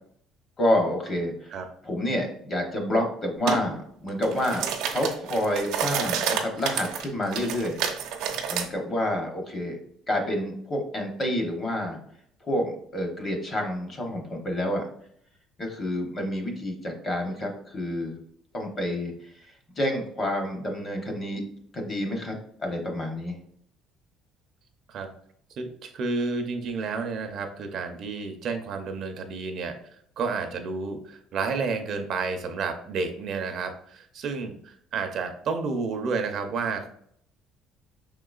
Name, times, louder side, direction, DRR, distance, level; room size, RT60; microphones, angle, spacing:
voice 1, 0.6-1.5 1.8-7.8 8.5-9.8 10.1-12.0 12.4-14.9 15.6-18.2 18.5-19.1 19.8-21.4 21.7-23.4, left 1 dB, 25° left, 2 dB, 0.9 m, -28 dB
sound 1, 3.5-3.6 4.1-8.7, right 7 dB, 80° right, 0.7 m, -29 dB
voice 2, 25.6-36.9, right 4 dB, 45° right, 6 dB, 0.5 m, -31 dB
5.6 x 3.7 x 2.3 m, 0.66 s
cardioid pair, 165°, 0 cm